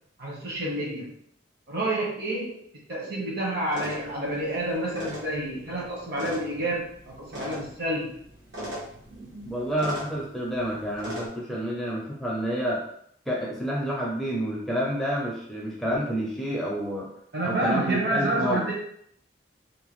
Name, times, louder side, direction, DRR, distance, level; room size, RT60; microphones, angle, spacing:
voice 1, 0.2-1.1 1.7-2.6 2.9-8.2 17.3-18.7, right 1 dB, 55° right, -4 dB, 1.0 m, -29 dB
sound 1, 3.7-11.3, equal, 80° right, 1.0 m, -40 dB
voice 2, 9.5-12.8 13.3-17.1 17.4-18.6, equal, ahead, -4 dB, 0.5 m, -29 dB
2.8 x 2.2 x 3.0 m, 0.67 s
head